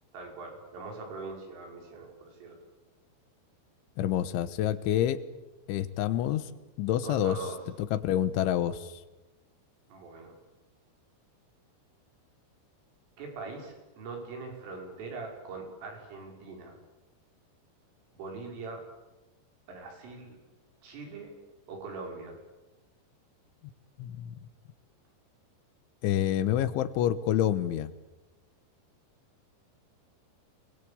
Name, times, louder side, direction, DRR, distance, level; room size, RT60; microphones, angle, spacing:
voice 1, 0.1-2.6 7.0-7.6 9.9-10.3 13.2-16.8 18.1-18.9 19.7-20.4 20.8-21.3 21.7-22.4, right 3 dB, 85° right, 1 dB, 8.1 m, -42 dB
voice 2, 4.0-5.2 5.7-6.5 6.8-7.4 7.8-9.0 24.0-24.4 26.0-27.9, left 11 dB, 80° left, 14 dB, 3.4 m, -28 dB
28.0 x 21.0 x 8.6 m, 1.1 s
omnidirectional pair, 5.6 m